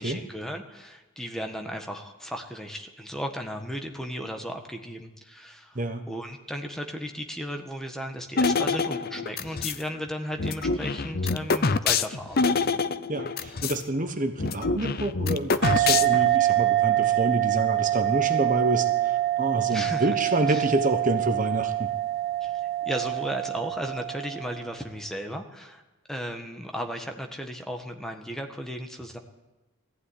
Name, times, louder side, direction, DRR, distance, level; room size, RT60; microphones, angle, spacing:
voice 1, 0.0-5.8 6.1-12.5 19.7-20.1 20.5-20.6 22.4-25.8 26.1-29.2, equal, ahead, 4 dB, 1.5 m, -35 dB
voice 2, 5.7-6.1 13.1-21.9, right 2 dB, 35° right, 7 dB, 1.2 m, -28 dB
sound 1, 8.4-9.8 10.4-13.8 14.1-14.2 14.4-16.4, left 4 dB, 45° left, 0.7 m, -26 dB
sound 2, 15.6-24.7, right 14 dB, 55° right, 2.3 m, -25 dB
19.0 x 14.5 x 9.9 m, 1.1 s
head